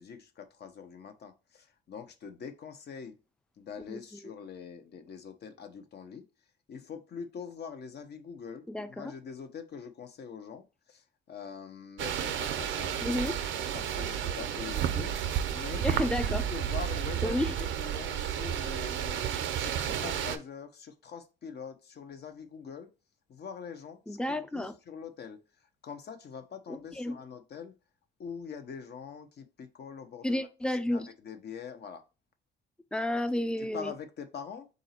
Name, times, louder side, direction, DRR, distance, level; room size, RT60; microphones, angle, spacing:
voice 1, 0.0-3.2 3.6-6.3 6.7-15.9 16.1-22.9 23.3-27.8 28.2-30.5 30.8-32.0 33.6-34.7, left 6 dB, 55° left, 0.7 m, -44 dB
voice 2, 8.7-9.1 13.0-13.3 15.8-16.4 17.2-17.5 24.1-24.7 26.7-27.2 30.2-31.1 32.9-33.9, left 1 dB, 5° left, 0.4 m, -31 dB
sound 1, 12.0-20.4, right 9 dB, 75° right, 0.5 m, -32 dB
4.0 x 2.6 x 4.2 m
cardioid pair, 90°, 20 cm